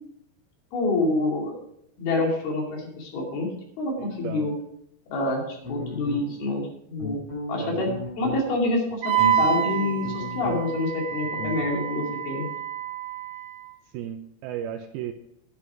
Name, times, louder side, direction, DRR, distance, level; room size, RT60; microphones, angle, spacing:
voice 1, 0.7-1.6 2.0-4.5 5.1-7.2 7.5-12.5, left 2 dB, 80° left, -1 dB, 4.5 m, -27 dB
voice 2, 4.0-4.5 7.6-7.8 13.9-15.1, right 10 dB, 85° right, 5 dB, 2.5 m, -35 dB
sound 1, 5.6-6.5 7.0-8.4 8.9-10.8 11.1-12.2, left 1 dB, 40° left, 5.1 m, -34 dB
Wind instrument woodwind instrument, 9.0-13.7, right 9 dB, 65° right, 1.7 m, -28 dB
10.5 x 9.9 x 4.7 m, 0.77 s
omnidirectional pair, 4.4 m